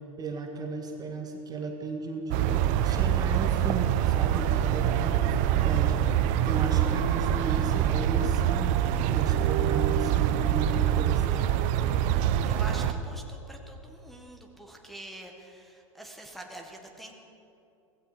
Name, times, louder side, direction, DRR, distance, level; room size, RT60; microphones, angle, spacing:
voice 1, 0.2-8.8 9.1-11.6, right 3 dB, 20° right, 3 dB, 1.6 m, -35 dB
sound 1, 2.3-12.9, right 10 dB, 45° right, 0.8 m, -25 dB
voice 2, 12.1-17.1, right 1 dB, ahead, 0 dB, 1.7 m, -45 dB
17.0 x 15.5 x 5.1 m, 2.8 s
hypercardioid pair, 100°, 17 cm